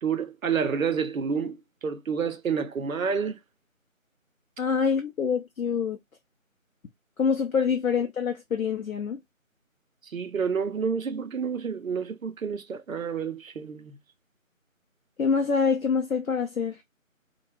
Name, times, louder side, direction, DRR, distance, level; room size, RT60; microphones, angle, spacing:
voice 1, 0.0-3.4 10.0-14.0, right 6 dB, 75° right, 0.5 m, -29 dB
voice 2, 4.6-6.0 7.2-9.2 15.2-16.8, left 6 dB, 85° left, 0.6 m, -25 dB
2.1 x 2.0 x 3.1 m
figure-of-eight pair, 165°, 41 cm